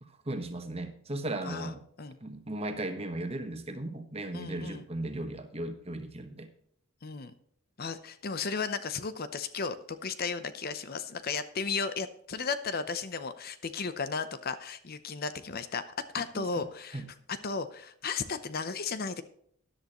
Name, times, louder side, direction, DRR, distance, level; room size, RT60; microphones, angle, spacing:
voice 1, 0.0-1.8 2.2-6.5 16.3-16.5 16.9-17.1, right 1 dB, 30° right, 7 dB, 1.3 m, -36 dB
voice 2, 4.3-4.8 7.0-7.3 7.8-15.8 16.1-17.0 17.4-19.2, left 5 dB, 45° left, 12 dB, 0.7 m, -34 dB
13.5 x 10.5 x 3.0 m, 0.67 s
head